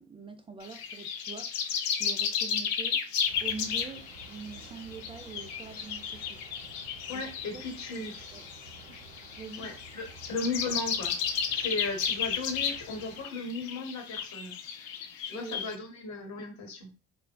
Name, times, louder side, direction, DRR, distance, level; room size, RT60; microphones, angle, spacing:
voice 1, 0.0-3.0 3.4-6.4 7.1-7.2 7.5-8.4 9.4-9.7 15.3-15.6, right 5 dB, 15° right, 0.3 m, -44 dB
sound 1, 0.6-15.7, left 7 dB, 70° left, 0.5 m, -34 dB
sound 2, 3.3-13.2, right 3 dB, 80° right, 0.7 m, -51 dB
voice 2, 7.1-8.1 9.6-11.1 11.5-14.6 15.2-16.9, left 3 dB, 50° left, 1.0 m, -36 dB
3.7 x 2.0 x 2.3 m
figure-of-eight pair, 45°, 36 cm